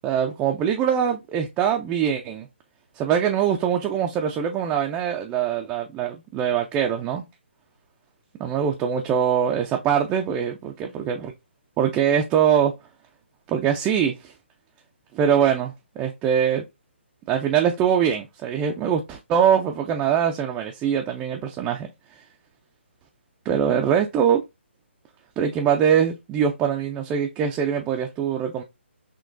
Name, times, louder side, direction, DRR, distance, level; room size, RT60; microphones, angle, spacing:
voice 1, 0.0-2.5 3.0-7.2 8.4-11.3 11.8-12.7 13.5-14.1 15.1-16.6 17.3-21.9 23.5-24.4 25.4-28.6, right 8 dB, 15° right, 0.3 m, -23 dB
5.9 x 2.2 x 2.5 m
figure-of-eight pair, 150°, 6 cm